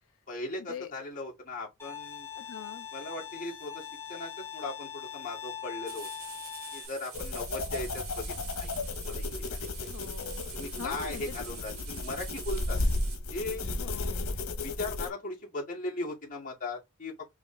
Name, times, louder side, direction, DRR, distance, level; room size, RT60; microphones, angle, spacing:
voice 1, 0.3-2.3 2.9-6.1 6.7-8.7 9.0-9.9 10.5-12.8 13.3-13.7 14.6-17.3, left 2 dB, 40° left, 2.2 m, -38 dB
Bowed string instrument, 1.8-6.9, left 9 dB, 10° left, 1.3 m, -42 dB
voice 2, 2.4-2.9 9.9-10.4 10.8-11.2 13.7-14.3, left 7 dB, 65° left, 0.3 m, -42 dB
sound 1, 5.9-13.2, right 6 dB, 80° right, 2.1 m, -46 dB
sound 2, 7.1-15.1, left 2 dB, 85° left, 1.1 m, -34 dB
5.0 x 3.0 x 3.3 m
head